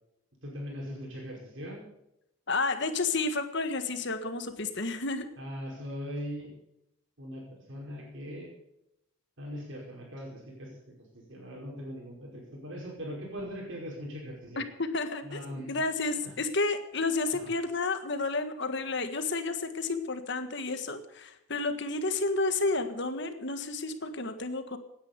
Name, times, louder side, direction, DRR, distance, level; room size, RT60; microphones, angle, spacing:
voice 1, 0.4-1.8 5.4-6.5 7.2-7.4 7.7-8.5 9.4-10.7 11.1-14.6 15.2-15.8 16.1-16.3 17.3-17.5, equal, 60° right, -2 dB, 5.2 m, -40 dB
voice 2, 2.5-5.3 14.6-24.8, left 3 dB, 55° left, 9 dB, 1.6 m, -31 dB
17.0 x 9.9 x 6.9 m, 0.82 s
head